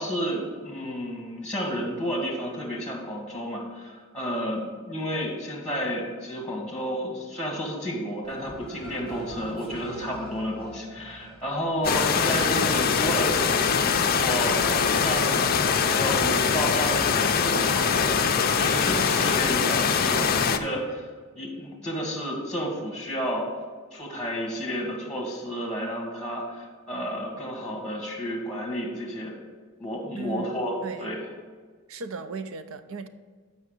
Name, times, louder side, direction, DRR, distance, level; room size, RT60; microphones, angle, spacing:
voice 1, 0.0-13.3 14.0-15.5 15.9-21.1 21.3-23.5 23.9-29.3 29.8-31.2, equal, 5° left, -2 dB, 1.5 m, -31 dB
Cheering, 8.2-20.2, equal, 25° right, 1.7 m, -44 dB
sound 1, 11.8-20.6, left 6 dB, 40° left, 0.4 m, -23 dB
voice 2, 30.2-31.1 31.9-33.1, right 4 dB, 65° right, 11 dB, 0.5 m, -36 dB
7.0 x 5.5 x 6.5 m, 1.5 s
head